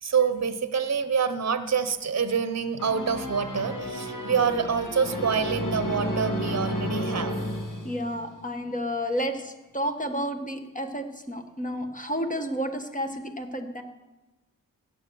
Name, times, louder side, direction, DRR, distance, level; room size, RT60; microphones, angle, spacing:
voice 1, 0.0-7.3, right 6 dB, 50° right, 10 dB, 0.9 m, -26 dB
sound 1, 2.8-8.4, left 1 dB, 65° left, 2.2 m, -32 dB
voice 2, 7.8-13.8, equal, 25° left, 5 dB, 1.5 m, -31 dB
16.0 x 9.0 x 7.0 m, 1.1 s
wide cardioid pair, 85°, 34 cm